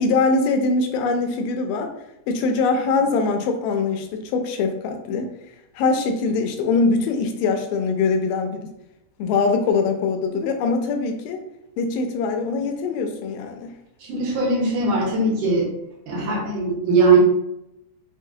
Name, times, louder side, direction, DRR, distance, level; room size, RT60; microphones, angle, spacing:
voice 1, 0.0-1.9 2.3-5.3 5.8-8.6 9.2-11.4 11.8-13.8, left 4 dB, 85° left, 5 dB, 2.1 m, -22 dB
voice 2, 14.1-15.7 16.1-17.2, right 3 dB, 75° right, -4 dB, 2.5 m, -20 dB
5.7 x 2.3 x 2.7 m, 0.85 s
omnidirectional pair, 3.8 m